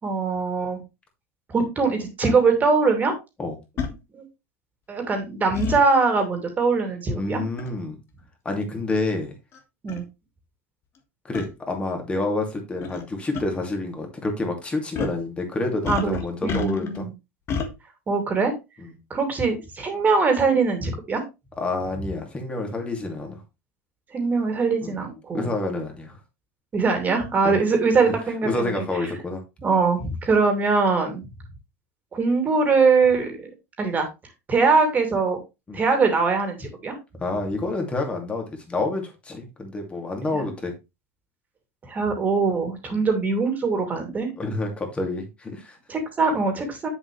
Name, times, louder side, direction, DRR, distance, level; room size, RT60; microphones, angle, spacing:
voice 1, 0.0-0.8 1.5-3.2 4.1-4.2 4.9-7.4 9.8-10.0 15.9-16.2 16.4-17.1 18.1-18.5 19.1-21.2 24.1-25.5 26.7-28.8 29.6-31.2 32.1-33.5 33.8-34.1 34.5-35.4 35.7-36.9 40.3-40.4 41.9-44.3 45.9-46.9, right 4 dB, 20° right, 4 dB, 2.7 m, -22 dB
sound 1, 2.2-2.3 3.8-3.9 5.5-5.8 7.6-7.8 8.6-8.7 9.5-9.6 9.9-10.0 11.3-11.5 12.8-13.0 13.3-13.4 14.9-15.2 15.8-17.0 17.5-17.7, left 6 dB, 35° left, 1.7 m, -29 dB
voice 2, 7.1-8.0 8.4-9.3 11.2-17.1 18.8-18.9 21.6-23.4 24.8-25.0 25.3-26.2 27.4-27.6 28.1-28.2 28.4-29.4 35.7-35.8 37.2-40.7 42.9-43.0 44.4-45.8, left 2 dB, 15° left, 3 dB, 2.6 m, -28 dB
7.9 x 7.2 x 3.3 m, 0.24 s
supercardioid pair, 135°, 7 cm